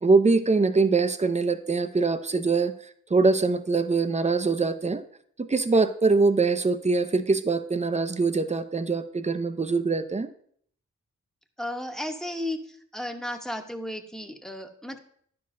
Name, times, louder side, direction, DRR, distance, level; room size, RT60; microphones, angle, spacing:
voice 1, 0.0-2.7 3.1-5.0 5.4-10.3, right 4 dB, 25° right, 11 dB, 0.6 m, -23 dB
voice 2, 11.6-15.0, left 1 dB, ahead, 5 dB, 1.0 m, -34 dB
10.0 x 6.7 x 2.7 m, 0.62 s
cardioid pair, 45°, 30 cm